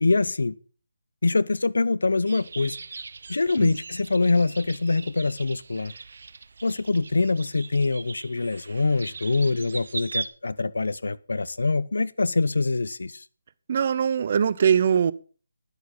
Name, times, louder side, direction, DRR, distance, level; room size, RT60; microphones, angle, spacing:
voice 1, 0.0-0.5 1.2-2.8 3.3-5.9 6.6-13.2, left 3 dB, 80° left, 0.8 m, -24 dB
sound 1, 2.3-10.3, right 4 dB, 60° right, 1.0 m, -39 dB
voice 2, 13.7-15.1, right 7 dB, 45° right, 0.6 m, -21 dB
10.5 x 8.2 x 5.8 m
figure-of-eight pair, 160°, 0 cm